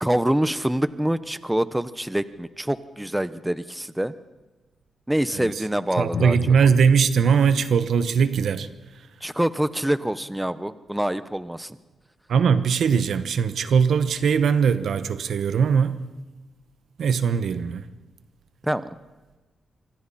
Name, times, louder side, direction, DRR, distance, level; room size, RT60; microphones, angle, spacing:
voice 1, 0.0-4.1 5.1-6.4 9.2-11.8 18.6-18.9, right 1 dB, 5° right, 1.0 m, -25 dB
voice 2, 6.0-8.7 12.3-16.0 17.0-17.8, right 6 dB, 75° right, 1.1 m, -20 dB
Drum, 6.1-9.6, left 3 dB, 65° left, 8.0 m, -36 dB
26.0 x 24.5 x 4.3 m
cardioid pair, 65°, 0 cm